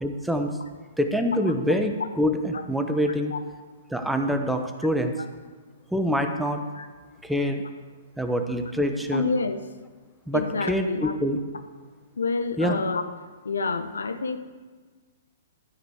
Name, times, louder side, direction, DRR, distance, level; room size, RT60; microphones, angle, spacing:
voice 1, 0.0-0.5 1.0-3.3 3.9-5.1 5.9-6.6 7.2-7.6 8.2-9.3 10.3-11.4 12.6-12.8, equal, ahead, 5 dB, 0.9 m, -25 dB
voice 2, 9.1-9.6 10.3-11.1 12.2-13.0 13.4-14.4, left 4 dB, 90° left, 9 dB, 0.8 m, -28 dB
13.0 x 5.1 x 7.8 m, 1.4 s
hypercardioid pair, 130°, 0 cm